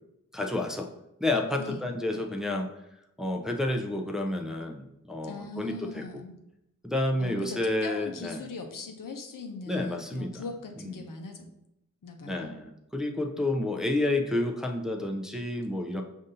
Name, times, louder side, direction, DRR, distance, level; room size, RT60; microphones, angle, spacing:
voice 1, 0.3-0.9 1.2-2.7 3.2-6.2 6.8-8.4 9.7-10.4 10.8-10.9 12.2-16.0, left 2 dB, ahead, 1 dB, 0.5 m, -30 dB
voice 2, 5.2-6.4 7.2-11.5 12.0-12.6, left 3 dB, 75° left, 3 dB, 0.7 m, -40 dB
5.2 x 2.7 x 3.8 m, 0.85 s
cardioid pair, 55°, 33 cm